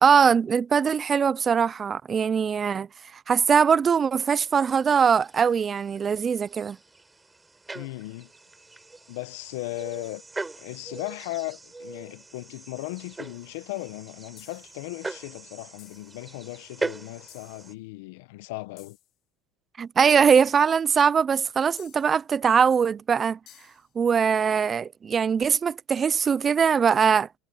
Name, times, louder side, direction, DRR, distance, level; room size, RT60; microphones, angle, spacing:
voice 1, 0.0-2.9 3.3-6.8 19.8-23.4 24.0-27.3, right 6 dB, 30° right, 0.5 m, -21 dB
sound 1, 4.4-17.7, right 3 dB, 15° right, 4.6 m, -41 dB
voice 2, 7.7-8.3 9.1-10.2 10.6-19.0, left 20 dB, 80° left, 1.3 m, -37 dB
sound 2, 14.4-14.8 15.8-16.1 17.3-17.6 18.8-19.1 20.3-20.7 21.8-22.2 23.5-23.9, left 14 dB, 55° left, 2.5 m, -53 dB
supercardioid pair, 105°, 0 cm